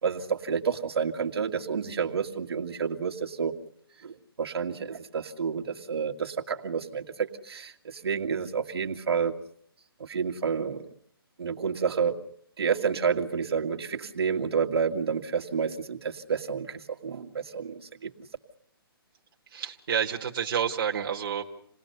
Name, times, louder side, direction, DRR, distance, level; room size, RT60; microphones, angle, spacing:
voice 1, 0.0-3.5 4.0-9.4 10.0-10.9 11.4-12.1 12.6-18.1, right 6 dB, 80° right, 3 dB, 2.3 m, -29 dB
voice 2, 19.5-21.5, right 8 dB, 60° right, 1 dB, 2.2 m, -29 dB
28.5 x 19.5 x 6.9 m, 0.65 s
hypercardioid pair, 155°, 13 cm